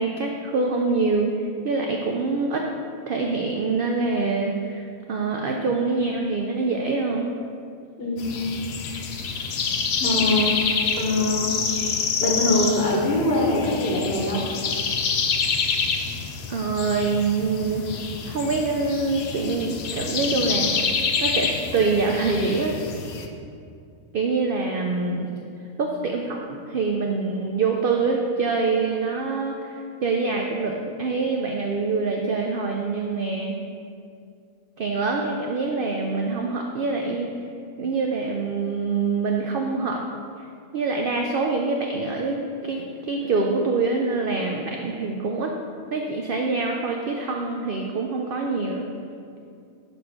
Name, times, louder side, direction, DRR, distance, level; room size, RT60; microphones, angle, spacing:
voice 1, 0.0-2.7 3.1-7.3 16.5-17.9 18.3-20.9 21.2-22.8 24.1-25.3 25.8-29.7 30.0-33.6 34.8-37.3 37.8-40.0 40.7-45.5 45.9-48.8, right 4 dB, 80° right, 1 dB, 0.4 m, -25 dB
voice 2, 8.0-8.5 10.0-10.5 11.0-11.5 12.2-14.5, left 1 dB, 50° left, -2 dB, 1.1 m, -23 dB
sound 1, 8.2-23.3, left 5 dB, 65° left, 0.6 m, -27 dB
5.0 x 4.2 x 5.7 m, 2.4 s
omnidirectional pair, 1.5 m